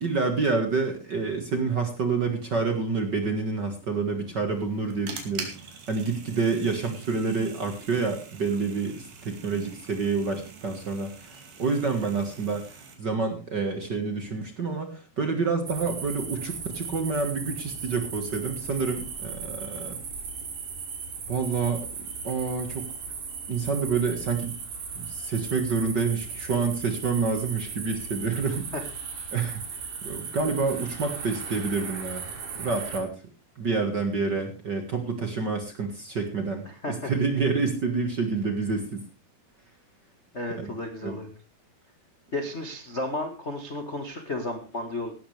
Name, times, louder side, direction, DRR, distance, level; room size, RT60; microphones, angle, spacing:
voice 1, 0.0-5.5 5.9-12.7 13.0-20.0 21.3-21.9 22.2-22.9 23.5-24.6 24.9-28.7 29.3-29.6 30.0-32.3 32.6-33.1 33.6-39.0 40.6-40.7 41.0-41.2, right 4 dB, 45° right, 5 dB, 1.5 m, -28 dB
sound 1, 4.5-13.0, right 6 dB, 80° right, 4.4 m, -43 dB
sound 2, 15.7-33.0, right 5 dB, 60° right, 4.1 m, -37 dB
voice 2, 36.6-37.1 40.3-41.3 42.3-45.1, left 2 dB, 50° left, 4 dB, 0.7 m, -33 dB
17.0 x 12.5 x 3.4 m, 0.32 s
omnidirectional pair, 4.1 m